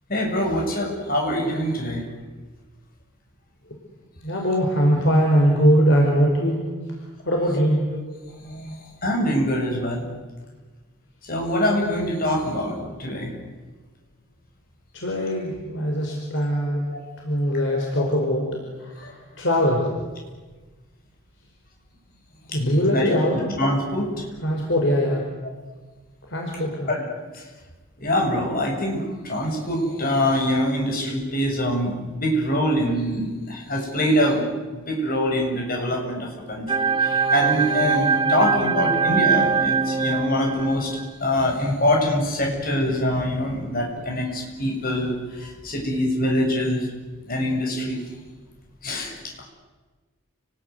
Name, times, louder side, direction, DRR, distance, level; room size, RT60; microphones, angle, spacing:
voice 1, 0.1-2.0 8.4-10.2 11.2-13.3 16.7-17.0 17.7-18.1 19.0-19.1 22.5-22.6 22.9-24.1 26.9-27.0 28.0-34.5 34.7-46.9 47.3-48.0 48.8-49.3, equal, 45° left, 0 dB, 7.3 m, -24 dB
voice 2, 4.2-6.6 7.2-7.8 14.9-16.8 17.2-19.9 22.5-23.5 24.4-25.2 26.3-26.9, equal, 60° left, 0 dB, 5.0 m, -21 dB
sound 1, 36.7-41.1, right 5 dB, 25° right, 0.8 m, -22 dB
30.0 x 20.5 x 9.6 m, 1.3 s
head